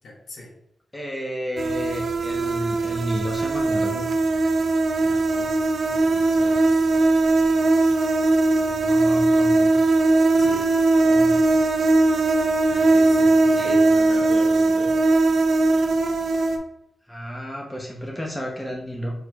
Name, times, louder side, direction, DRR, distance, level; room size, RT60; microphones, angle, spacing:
voice 1, 0.0-0.5 5.0-5.5 5.9-6.9 10.4-10.8 12.7-15.0, left 2 dB, 75° left, -1 dB, 1.1 m, -39 dB
voice 2, 0.9-4.1 8.5-9.7 11.0-11.5 13.6-13.8 17.1-19.1, equal, 5° left, -2 dB, 0.7 m, -32 dB
sound 1, 1.6-16.6, right 2 dB, 65° right, 0.4 m, -19 dB
6.2 x 3.1 x 2.3 m, 0.81 s
wide cardioid pair, 155°, 0 cm